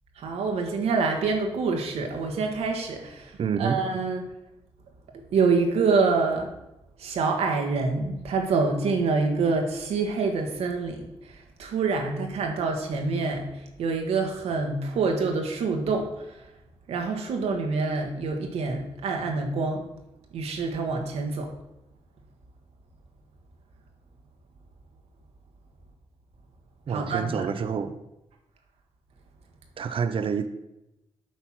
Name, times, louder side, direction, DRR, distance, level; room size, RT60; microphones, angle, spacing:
voice 1, 0.2-4.3 5.3-6.5 7.0-16.5 16.9-19.8 20.3-21.5 26.9-27.5, right 4 dB, 90° right, 3 dB, 1.3 m, -26 dB
voice 2, 3.4-3.8 26.9-28.0 29.8-30.5, right 6 dB, 60° right, 10 dB, 0.6 m, -27 dB
7.9 x 4.3 x 6.1 m, 0.91 s
cardioid pair, 70°, 10 cm